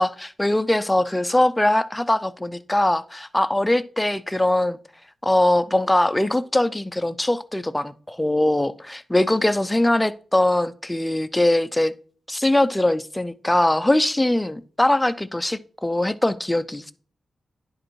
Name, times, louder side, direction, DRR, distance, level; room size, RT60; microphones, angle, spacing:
voice 1, 0.0-4.8 5.2-11.9 12.3-16.9, left 1 dB, 10° left, 0.4 m, -21 dB
10.5 x 5.0 x 4.6 m
wide cardioid pair, 165°, 0 cm